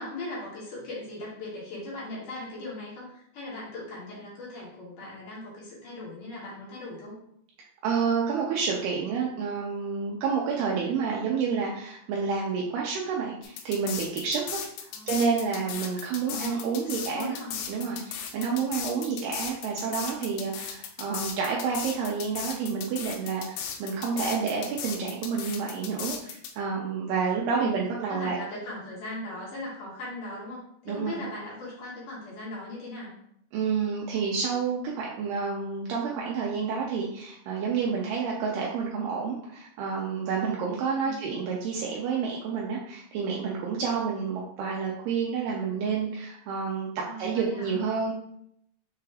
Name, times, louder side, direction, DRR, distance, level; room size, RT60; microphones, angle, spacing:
voice 1, 0.0-7.2 14.9-15.1 16.2-17.6 24.1-24.6 27.6-33.2 41.0-41.4 47.0-47.8, left 2 dB, 60° left, -6 dB, 2.3 m, -39 dB
voice 2, 7.8-17.4 17.7-28.4 30.9-31.2 33.5-46.9 47.2-48.1, right 5 dB, 90° right, -2 dB, 2.2 m, -29 dB
sound 1, 13.4-26.5, left 8 dB, 85° left, 2.9 m, -36 dB
6.7 x 2.3 x 3.3 m, 0.71 s
omnidirectional pair, 5.1 m